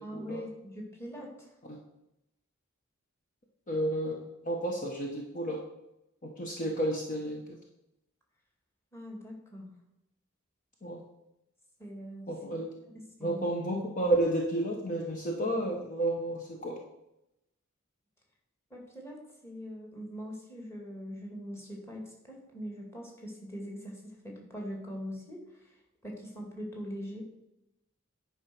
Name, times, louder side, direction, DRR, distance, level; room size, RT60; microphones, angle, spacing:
voice 1, 0.0-1.5 8.9-9.7 11.8-12.3 13.2-13.4 18.7-25.4 26.0-27.2, equal, 10° left, -1 dB, 2.0 m, -42 dB
voice 2, 3.7-5.6 6.2-7.6 10.8-11.0 12.3-12.7 13.2-16.8, right 1 dB, 40° left, 0 dB, 1.0 m, -31 dB
9.8 x 5.0 x 6.0 m, 0.87 s
head